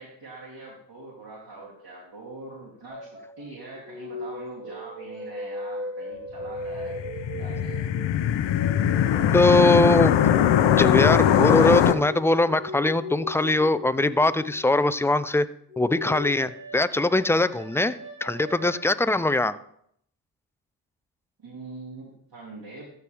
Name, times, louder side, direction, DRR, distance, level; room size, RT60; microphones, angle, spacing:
voice 1, 0.0-3.1 3.4-7.0 7.3-7.9 21.4-22.9, right 2 dB, 50° right, -6 dB, 3.0 m, -43 dB
sound 1, 2.9-3.5 3.8-14.8 15.7-18.7, left 2 dB, 25° right, 2.8 m, -36 dB
sound 2, 6.7-11.9, left 10 dB, 70° left, 0.7 m, -21 dB
voice 2, 9.3-10.1 10.7-15.5 15.8-19.5, left 2 dB, 5° left, 14 dB, 0.4 m, -21 dB
14.0 x 4.7 x 3.5 m, 0.69 s
supercardioid pair, 40°, 46 cm